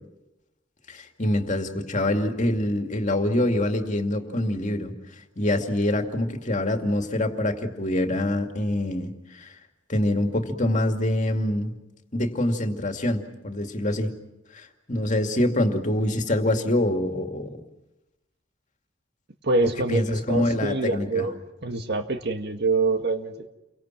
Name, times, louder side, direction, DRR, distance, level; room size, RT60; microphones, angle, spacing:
voice 1, 0.9-4.9 5.4-9.5 9.9-11.7 12.1-14.1 14.5-17.6 19.9-21.2, left 1 dB, 40° left, 5 dB, 2.4 m, -25 dB
voice 2, 19.4-21.4 21.6-23.5, right 3 dB, 55° right, 6 dB, 1.8 m, -25 dB
30.0 x 24.0 x 6.1 m, 0.96 s
head